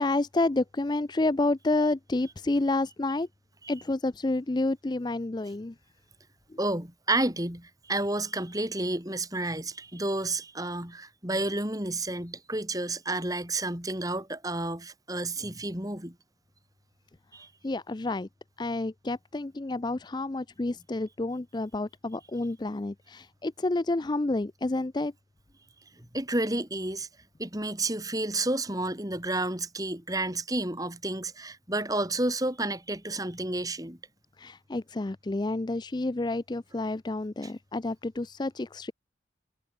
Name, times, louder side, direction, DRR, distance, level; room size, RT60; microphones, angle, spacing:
voice 1, 0.0-3.3 3.7-5.7 17.6-18.3 18.6-25.1 34.4-38.9, left 2 dB, 25° left, 0.4 m, -29 dB
voice 2, 6.6-16.1 17.3-17.5 26.1-27.1 27.4-34.0 37.4-37.5, right 2 dB, 20° right, 4.9 m, -31 dB
head